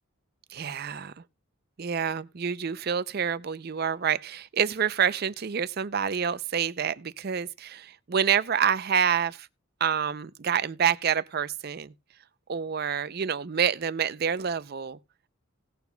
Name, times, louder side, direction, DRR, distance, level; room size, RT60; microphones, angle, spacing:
voice 1, 0.5-1.1 1.8-9.5 9.8-11.9 12.5-15.0, right 7 dB, 45° right, 0.5 m, -27 dB
18.0 x 7.0 x 2.2 m
head